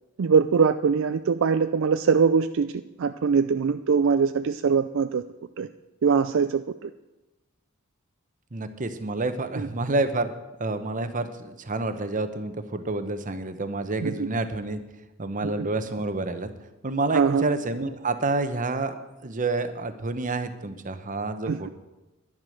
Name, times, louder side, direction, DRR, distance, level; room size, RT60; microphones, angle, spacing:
voice 1, 0.2-5.2 5.6-5.7 6.0-6.9 9.5-9.7 14.0-14.3 15.4-15.7 17.1-17.5 21.5-21.7, right 5 dB, 60° right, 10 dB, 0.4 m, -22 dB
voice 2, 8.5-10.3 10.6-14.8 15.2-16.5 16.8-18.9 19.2-21.7, right 2 dB, 40° right, 10 dB, 0.9 m, -28 dB
11.0 x 11.0 x 6.5 m, 1.1 s
head